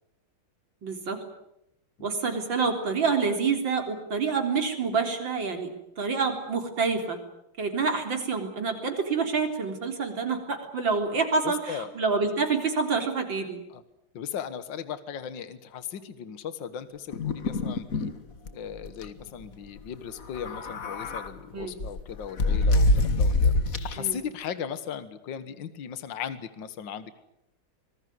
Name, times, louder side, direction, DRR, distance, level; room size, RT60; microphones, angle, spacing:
voice 1, 0.8-1.2 2.0-5.7 6.0-7.2 7.6-13.6 21.5-21.8 24.0-24.2, right 4 dB, 65° right, 4 dB, 4.4 m, -27 dB
voice 2, 11.4-11.9 13.7-13.8 14.1-18.1 18.5-23.5 23.8-27.2, left 8 dB, 65° left, 12 dB, 2.0 m, -37 dB
sound 1, 17.1-18.1 18.5-18.6 18.8-19.1 20.2-21.3 21.8-24.1, left 2 dB, 45° left, 1.9 m, -25 dB
26.0 x 20.0 x 9.5 m, 0.83 s
omnidirectional pair, 2.3 m